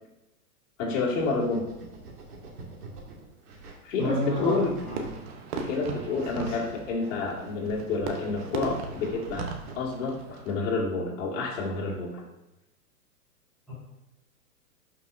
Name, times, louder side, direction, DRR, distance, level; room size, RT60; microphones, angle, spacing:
voice 1, 0.8-1.6 3.8-4.8 5.6-9.5 9.8-12.3, left 3 dB, 50° left, -3 dB, 2.5 m, -29 dB
sound 1, 1.1-9.7, right 3 dB, 70° right, 2.5 m, -47 dB
voice 2, 4.0-5.0 13.7-13.8, equal, ahead, -14 dB, 0.3 m, -30 dB
Fireworks, 4.4-10.5, right 4 dB, 40° right, 1.0 m, -38 dB
11.5 x 5.8 x 2.7 m, 0.95 s
hypercardioid pair, 140°, 46 cm